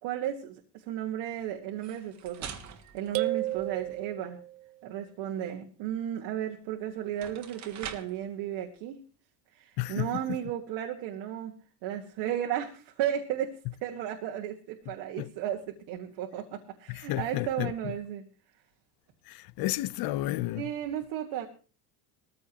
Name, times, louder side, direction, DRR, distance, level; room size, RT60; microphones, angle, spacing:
voice 1, 0.0-2.5 2.9-4.4 4.8-9.0 9.5-11.6 11.8-18.3 20.5-21.5, right 10 dB, 60° right, 1.7 m, -34 dB
sound 1, 1.7-4.1 6.5-6.6 7.1-8.3, right 8 dB, 40° right, 1.5 m, -44 dB
sound 2, 3.1-4.7, right 17 dB, 80° right, 0.8 m, -32 dB
voice 2, 9.8-10.1 15.2-15.3 16.9-17.7 19.3-20.7, left 17 dB, 50° left, 0.8 m, -31 dB
19.0 x 14.5 x 3.0 m
cardioid pair, 130°, 46 cm